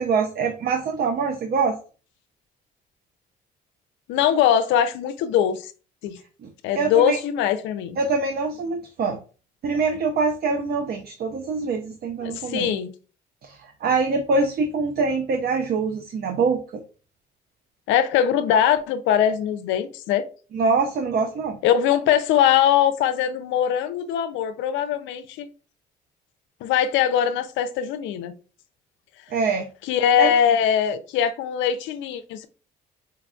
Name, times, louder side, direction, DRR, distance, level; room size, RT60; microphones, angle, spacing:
voice 1, 0.0-1.8 6.4-7.2 8.0-9.2 9.6-12.7 13.4-16.8 20.5-21.6 29.3-29.7 30.2-30.3, right 4 dB, 55° right, 0.5 m, -24 dB
voice 2, 4.1-5.7 6.0-6.2 6.6-8.0 12.2-12.9 17.9-20.2 21.6-25.5 26.6-28.3 29.8-32.5, left 9 dB, 75° left, 0.4 m, -21 dB
4.4 x 2.4 x 2.3 m
supercardioid pair, 60°, 19 cm